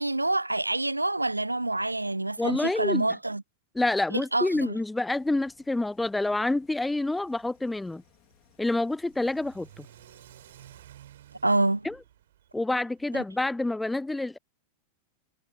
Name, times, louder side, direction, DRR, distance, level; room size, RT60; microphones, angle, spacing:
voice 1, 0.0-3.4 4.1-4.8 11.4-11.9 13.1-13.2, right 2 dB, 85° right, 0.5 m, -27 dB
voice 2, 2.4-3.1 3.8-8.0 8.6-9.9 11.8-12.0 12.5-14.4, left 2 dB, 5° left, 0.3 m, -28 dB
sound 1, 5.1-10.9, left 20 dB, 40° left, 3.5 m, -63 dB
Car / Accelerating revving vroom, 7.2-13.3, right 12 dB, 60° right, 4.1 m, -54 dB
figure-of-eight pair, 90°, 0 cm